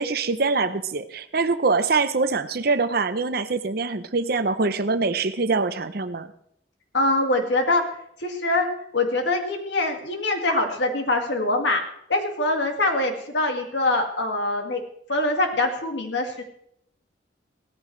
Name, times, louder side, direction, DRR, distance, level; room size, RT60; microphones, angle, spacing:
voice 1, 0.0-6.3, right 4 dB, 55° right, 12 dB, 0.7 m, -24 dB
voice 2, 6.9-7.8 8.2-8.7 8.9-11.8 12.1-14.8 15.1-16.4, left 2 dB, 70° left, 3 dB, 2.1 m, -23 dB
17.0 x 14.0 x 3.3 m, 0.70 s
head